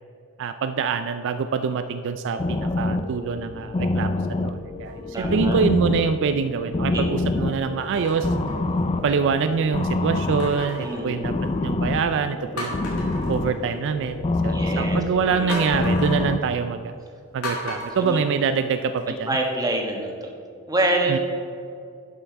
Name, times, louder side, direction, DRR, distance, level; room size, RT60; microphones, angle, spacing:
voice 1, 0.4-8.3 9.0-11.3 11.6-12.9 13.3-16.9 17.3-19.3 21.1-21.2, right 5 dB, 60° right, 9 dB, 0.3 m, -25 dB
sound 1, 2.4-16.4, left 2 dB, 25° left, 0.4 m, -26 dB
sound 2, 4.8-5.3 6.0-6.1 7.8-9.2 10.4-11.8 12.2-12.3 12.6-14.0 15.5-16.2 17.4-19.0 19.4-19.5, left 2 dB, 85° left, 2.3 m, -35 dB
voice 2, 5.1-5.6 6.9-7.0 10.8-11.2 14.5-15.0 15.3-15.7 17.6-17.7 18.0-18.2 19.1-20.3 20.7-21.2, right 1 dB, 15° right, 1 dB, 1.2 m, -26 dB
11.0 x 5.7 x 4.6 m, 2.5 s
head